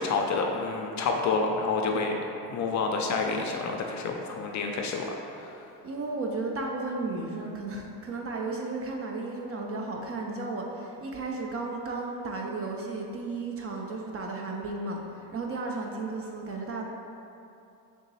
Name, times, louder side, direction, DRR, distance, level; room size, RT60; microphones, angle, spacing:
voice 1, 0.0-2.1 2.4-5.6, left 4 dB, 45° left, 2 dB, 0.4 m, -29 dB
voice 2, 5.8-16.9, right 3 dB, 35° right, 0 dB, 0.4 m, -34 dB
3.5 x 2.9 x 4.0 m, 2.7 s
supercardioid pair, 90°, 44 cm